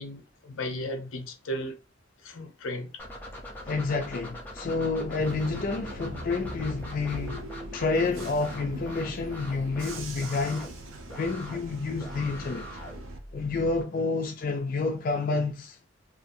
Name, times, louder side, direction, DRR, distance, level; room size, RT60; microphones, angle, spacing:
voice 1, 0.0-1.8 2.2-2.9, equal, 80° left, 0.6 m, -35 dB
sound 1, 3.0-13.8, equal, 10° left, 0.6 m, -42 dB
voice 2, 3.6-7.4 7.7-10.7 11.2-12.7 13.3-15.8, left 3 dB, 45° left, 0.3 m, -29 dB
Bus / Engine, 5.2-13.2, right 3 dB, 75° right, 0.6 m, -42 dB
2.5 x 2.4 x 2.6 m
head